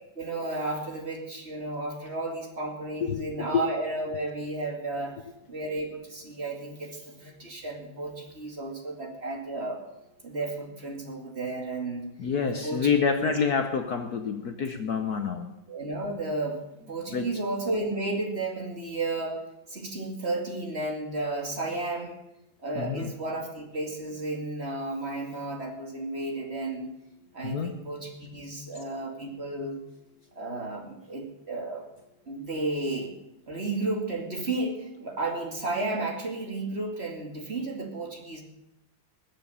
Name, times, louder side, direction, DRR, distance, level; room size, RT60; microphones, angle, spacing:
voice 1, 0.1-5.2 5.5-9.8 10.2-12.1 12.5-12.8 13.2-13.3 15.7-16.6 16.9-19.4 19.7-22.2 22.6-26.9 27.3-29.8 30.4-31.8 32.3-33.1 33.5-38.4, right 2 dB, 30° right, 0 dB, 2.5 m, -33 dB
voice 2, 12.2-15.5 17.1-17.3 22.7-23.1 27.4-27.8, left 6 dB, 55° left, 7 dB, 1.3 m, -27 dB
21.0 x 7.6 x 7.0 m, 0.89 s
omnidirectional pair, 2.2 m